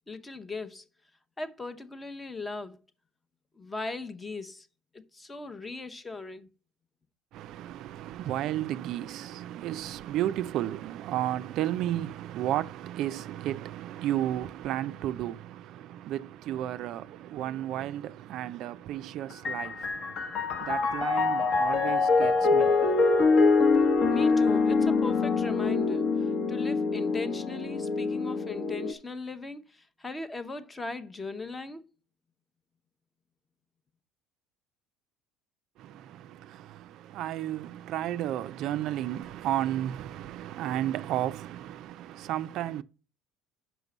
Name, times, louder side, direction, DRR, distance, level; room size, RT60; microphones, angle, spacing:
voice 1, 0.1-0.9 1.4-2.8 3.6-4.7 4.9-6.5 24.1-31.8, left 3 dB, 15° left, 0.7 m, -38 dB
voice 2, 7.3-22.9 35.8-42.8, right 12 dB, 55° right, 0.4 m, -33 dB
Piano, 19.3-28.9, left 4 dB, 45° left, 0.9 m, -25 dB
5.8 x 5.3 x 6.0 m
cardioid pair, 140°, 0 cm